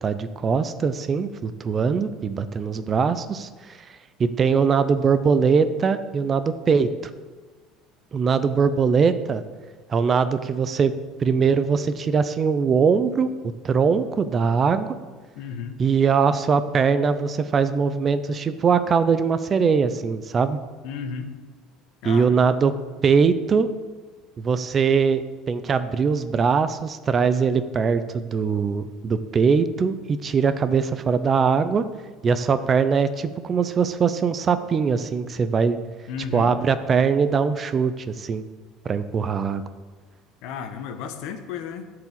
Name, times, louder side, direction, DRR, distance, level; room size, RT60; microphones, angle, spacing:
voice 1, 0.0-3.8 4.2-6.9 8.1-9.4 9.9-13.3 13.6-14.9 15.8-20.6 22.0-22.8 23.0-23.7 24.4-31.8 32.2-35.8 36.3-38.4 38.9-39.6, right 5 dB, 25° right, 12 dB, 0.5 m, -21 dB
voice 2, 15.3-15.8 20.8-21.3 22.0-22.6 36.1-36.6 40.4-41.9, left 6 dB, 65° left, 8 dB, 1.1 m, -33 dB
11.5 x 4.8 x 7.4 m, 1.4 s
cardioid pair, 155°, 0 cm